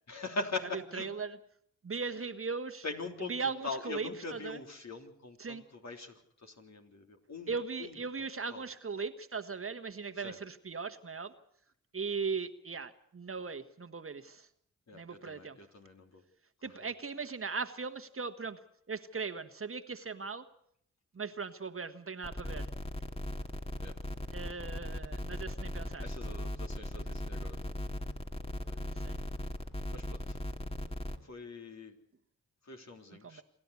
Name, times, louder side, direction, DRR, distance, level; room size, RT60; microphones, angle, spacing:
voice 1, 0.1-1.1 2.8-3.3 3.6-6.1 6.4-7.5 7.8-7.9 8.5-8.6 10.2-10.4 14.9-16.2 16.6-16.7 23.8-23.9 26.0-28.0 28.4-29.0 29.9-30.4 31.2-31.9 32.7-33.4, left 3 dB, 50° left, 3 dB, 3.5 m, -42 dB
voice 2, 0.7-1.4 1.8-2.8 3.3-4.6 5.4-5.6 7.5-11.3 11.9-14.5 14.9-15.6 16.6-18.6 18.9-20.4 21.1-22.7 24.3-26.0 28.9-29.2 33.2-33.4, right 5 dB, 40° right, 10 dB, 1.4 m, -38 dB
sound 1, 22.2-31.2, left 1 dB, 15° left, 2.2 m, -38 dB
27.5 x 11.5 x 8.3 m, 0.69 s
supercardioid pair, 50°, 33 cm